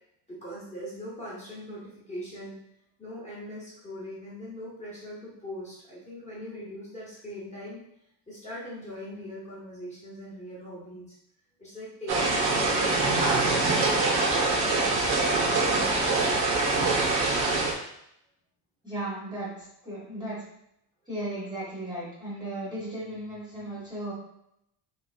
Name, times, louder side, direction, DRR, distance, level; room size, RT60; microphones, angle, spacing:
voice 1, 0.3-2.6 3.0-7.8 8.3-11.1 11.6-17.0, equal, 20° left, -7 dB, 0.8 m, -41 dB
Ambience Rain Moderate A, 12.1-17.7, right 3 dB, 70° right, 0.9 m, -24 dB
voice 2, 18.8-20.4 21.1-24.1, right 1 dB, 10° right, -8 dB, 0.8 m, -35 dB
3.3 x 3.0 x 2.4 m, 0.76 s
cardioid pair, 180°, 39 cm